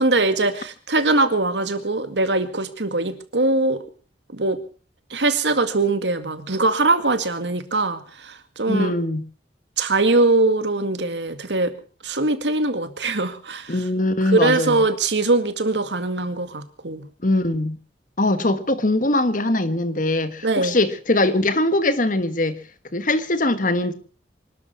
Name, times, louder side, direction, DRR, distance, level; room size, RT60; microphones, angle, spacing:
voice 1, 0.0-3.8 4.3-4.6 5.1-8.9 9.8-11.7 12.0-13.7 14.3-17.1 20.4-20.7, right 2 dB, 75° right, 10 dB, 2.1 m, -21 dB
voice 2, 8.7-9.3 13.7-14.8 17.2-17.8 18.2-22.6 22.9-23.9, left 2 dB, 45° left, 12 dB, 1.5 m, -21 dB
25.5 x 12.5 x 4.5 m, 0.38 s
head